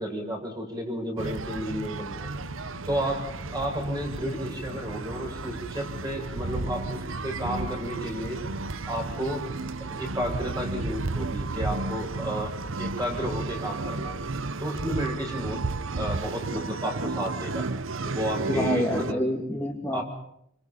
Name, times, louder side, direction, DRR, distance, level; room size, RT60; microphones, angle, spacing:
voice 1, 0.0-2.3 2.9-3.2 3.5-8.4 8.9-9.5 9.8-14.2 14.6-15.6 16.0-17.7 18.1-19.2 19.9-20.0, equal, 20° right, 2 dB, 7.3 m, -32 dB
sound 1, 1.2-19.1, right 3 dB, 85° right, 0.9 m, -33 dB
sound 2, 1.7-15.7, equal, 80° left, 2.4 m, -45 dB
voice 2, 18.5-20.0, left 1 dB, 10° left, -1 dB, 2.7 m, -27 dB
28.0 x 26.0 x 5.6 m, 0.73 s
head